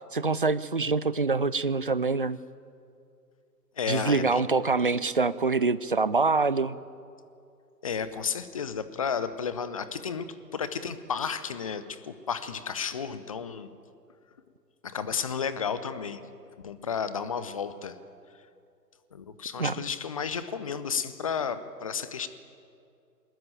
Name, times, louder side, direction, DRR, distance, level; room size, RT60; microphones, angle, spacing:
voice 1, 0.1-2.4 3.9-6.8 19.6-19.8, right 4 dB, 35° right, 16 dB, 0.5 m, -25 dB
voice 2, 3.8-4.5 7.8-10.3 10.5-13.7 14.8-16.2 16.6-17.9 19.1-22.3, left 6 dB, 20° left, 13 dB, 0.7 m, -32 dB
22.5 x 19.5 x 9.0 m, 2.5 s
figure-of-eight pair, 130°, 50 cm